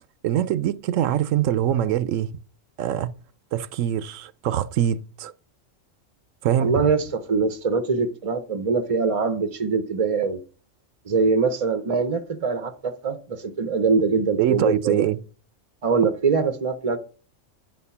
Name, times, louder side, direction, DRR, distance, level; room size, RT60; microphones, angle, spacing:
voice 1, 0.2-2.3 2.8-3.1 3.5-5.3 6.4-6.8 14.4-15.2, right 11 dB, 75° right, 0.9 m, -23 dB
voice 2, 6.6-10.4 11.1-15.1 15.8-17.0, right 4 dB, 40° right, 0.5 m, -23 dB
9.1 x 4.4 x 5.5 m
omnidirectional pair, 1.4 m